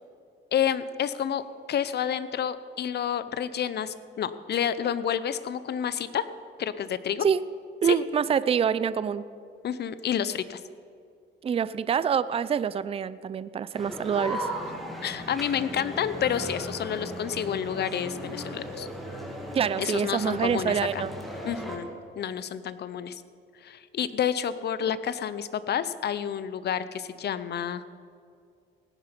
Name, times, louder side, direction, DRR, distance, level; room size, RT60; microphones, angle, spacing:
voice 1, 0.5-1.4 1.7-6.3 6.6-7.3 7.8-8.0 9.6-10.6 15.0-18.9 19.8-21.0 21.4-21.9 22.2-23.2 23.6-27.8, left 9 dB, 55° left, 14 dB, 0.7 m, -29 dB
voice 2, 7.8-9.2 11.4-14.5 19.5-21.1, right 7 dB, 30° right, 16 dB, 0.4 m, -26 dB
sound 1, 13.7-21.8, equal, ahead, 2.5 m, -37 dB
17.5 x 9.8 x 5.2 m, 2.3 s
cardioid pair, 90°, 20 cm